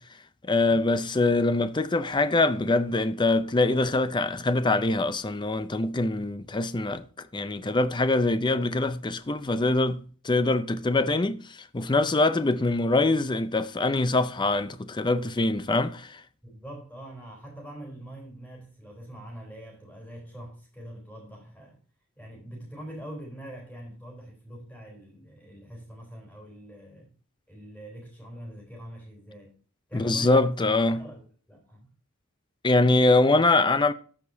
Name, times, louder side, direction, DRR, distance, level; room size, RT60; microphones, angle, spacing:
voice 1, 0.4-7.0 7.3-10.0 10.2-16.2 29.9-31.0 32.6-33.9, left 2 dB, 20° left, 0.5 m, -24 dB
voice 2, 16.4-21.8 22.2-27.1 27.5-29.5 29.9-31.9, right 1 dB, 5° left, 3.5 m, -44 dB
14.0 x 5.2 x 2.7 m
head